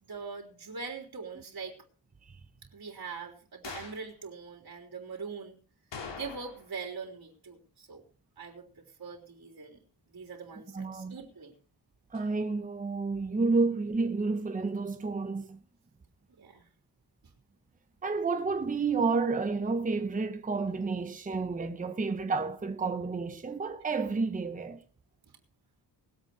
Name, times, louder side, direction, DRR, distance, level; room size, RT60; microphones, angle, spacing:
voice 1, 0.0-1.8 2.7-5.6 6.1-8.0 8.4-9.8 10.1-11.5 16.4-16.7, right 5 dB, 55° right, 3.6 m, -42 dB
sound 1, 3.6-4.1 5.9-6.8 7.0-7.1 12.1-12.3, left 5 dB, 85° left, 3.1 m, -43 dB
voice 2, 10.7-11.2 12.1-15.6 18.0-24.8, right 4 dB, 20° right, 0.9 m, -30 dB
20.0 x 8.2 x 5.0 m
wide cardioid pair, 175°, 42 cm